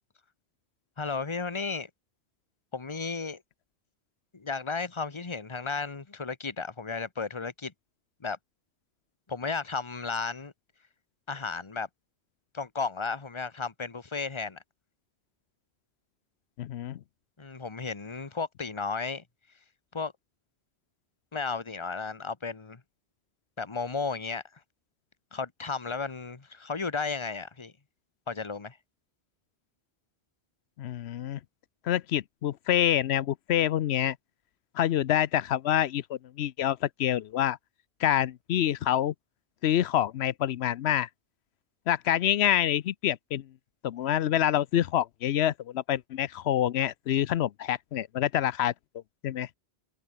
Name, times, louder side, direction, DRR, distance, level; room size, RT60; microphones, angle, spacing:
voice 1, 1.0-1.9 2.7-3.4 4.3-7.7 8.2-8.4 9.3-10.5 11.3-11.9 12.5-14.6 17.4-19.2 19.9-20.1 21.3-22.8 23.6-24.4 25.3-27.7 28.3-28.8, left 4 dB, 30° left, 1.3 m, -34 dB
voice 2, 16.6-17.0 30.8-31.4 31.8-34.2 34.7-37.6 38.0-39.1 39.6-41.1 41.9-43.4 43.8-48.7 49.2-49.5, left 11 dB, 85° left, 0.9 m, -27 dB
omnidirectional pair, 1.1 m